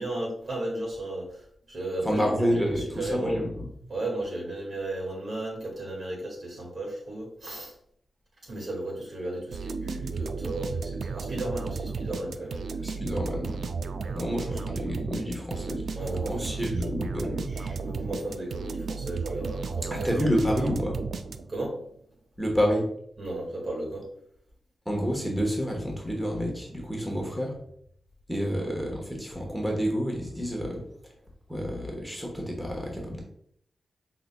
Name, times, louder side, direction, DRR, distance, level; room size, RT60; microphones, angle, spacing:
voice 1, 0.0-2.4 2.7-3.5 3.9-7.7 8.4-13.2 14.0-14.6 16.0-16.7 17.5-20.1 21.5-21.8 23.2-24.1 27.1-27.4 28.4-28.6, right 1 dB, 60° right, -2 dB, 1.9 m, -35 dB
voice 2, 2.0-3.7 12.8-13.7 14.1-16.0 16.3-17.5 19.9-21.0 22.4-22.8 24.8-27.5 28.3-30.8 31.5-33.2, equal, 5° right, 0 dB, 1.1 m, -29 dB
sound 1, 9.5-21.7, right 4 dB, 80° right, 0.3 m, -34 dB
5.8 x 4.0 x 2.2 m, 0.69 s
wide cardioid pair, 90°, 0 cm